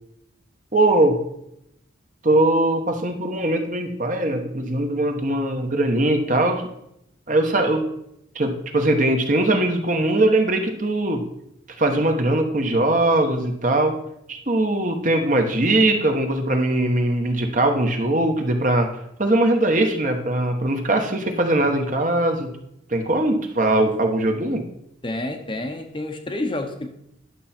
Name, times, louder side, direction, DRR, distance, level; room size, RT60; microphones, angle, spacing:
voice 1, 0.7-1.2 2.2-6.7 7.3-7.8 8.3-11.2 11.8-13.9 14.3-18.9 19.2-22.5 22.9-24.6, right 1 dB, 40° right, 1.2 m, -21 dB
voice 2, 25.0-26.9, left 1 dB, 25° left, 0.8 m, -29 dB
11.0 x 6.9 x 4.4 m
head